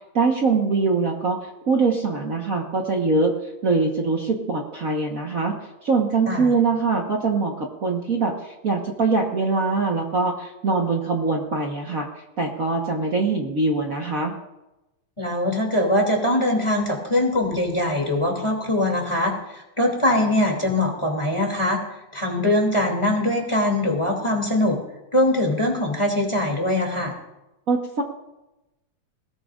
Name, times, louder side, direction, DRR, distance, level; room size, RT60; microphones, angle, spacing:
voice 1, 0.1-3.3 3.6-12.1 12.4-14.3 27.7-28.0, right 4 dB, 60° right, 1 dB, 0.8 m, -23 dB
voice 2, 15.2-21.8 22.1-24.8 25.1-27.2, left 1 dB, 10° left, 0 dB, 2.4 m, -22 dB
20.5 x 18.0 x 2.5 m, 0.96 s
omnidirectional pair, 3.4 m